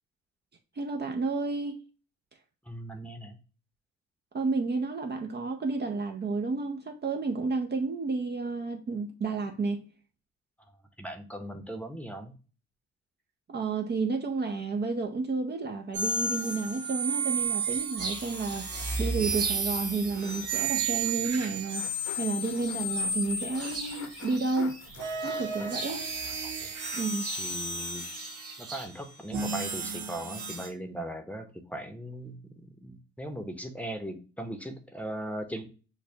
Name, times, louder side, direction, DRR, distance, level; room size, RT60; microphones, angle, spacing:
voice 1, 0.8-1.8 4.3-9.8 13.5-24.8 25.2-26.1 26.9-27.3, right 3 dB, 35° right, 0.6 m, -31 dB
voice 2, 2.7-3.4 11.0-12.3 25.9-26.0 26.6-26.7 27.4-28.0 28.6-35.6, right 1 dB, 5° left, 0.8 m, -39 dB
sound 1, 15.9-24.2 24.9-30.7, right 3 dB, 75° right, 1.3 m, -33 dB
sound 2, 17.4-26.8 27.1-27.2 27.4-27.5, left 7 dB, 70° left, 0.9 m, -49 dB
sound 3, 17.6-28.9, right 3 dB, 55° right, 1.5 m, -43 dB
6.4 x 2.3 x 2.8 m
cardioid pair, 90°, 30 cm